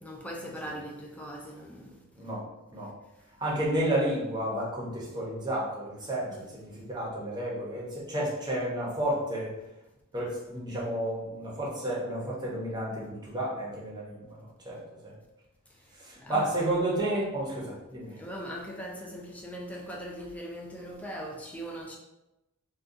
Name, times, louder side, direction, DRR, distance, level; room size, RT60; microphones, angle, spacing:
voice 1, 0.0-2.0 6.3-6.4 10.8-10.9 16.2-16.7 18.1-22.0, equal, 5° left, -2 dB, 0.4 m, -40 dB
voice 2, 2.2-2.5 2.7-2.9 3.4-9.5 10.1-15.1 16.0-18.2, right 1 dB, 20° right, -4 dB, 0.8 m, -31 dB
3.7 x 2.3 x 2.6 m, 0.95 s
head